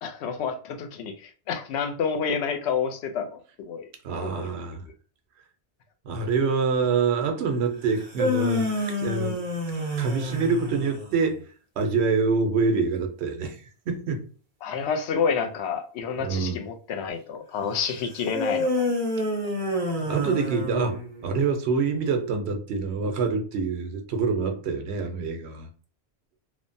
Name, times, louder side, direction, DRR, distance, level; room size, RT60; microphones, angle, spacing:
voice 1, 0.0-3.9 4.2-4.5 14.6-18.8, left 6 dB, 90° left, 0.8 m, -29 dB
voice 2, 4.0-4.9 6.0-9.4 10.0-11.4 11.8-13.6 13.9-14.3 16.2-16.6 20.0-25.7, right 4 dB, 85° right, 0.9 m, -26 dB
sound 1, 7.9-11.2 18.3-21.3, left 1 dB, 50° right, 0.9 m, -28 dB
3.0 x 2.1 x 2.6 m
omnidirectional pair, 1.1 m